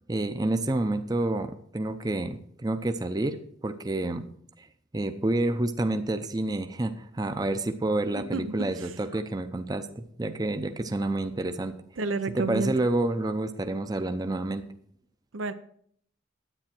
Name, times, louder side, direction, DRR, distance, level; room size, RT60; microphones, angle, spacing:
voice 1, 0.1-4.3 4.6-4.7 4.9-11.8 12.3-14.6, right 2 dB, 20° right, 8 dB, 0.6 m, -29 dB
voice 2, 8.2-8.9 12.0-12.8 15.3-15.5, right 3 dB, 85° right, 11 dB, 0.7 m, -31 dB
10.0 x 8.9 x 4.4 m, 0.65 s
head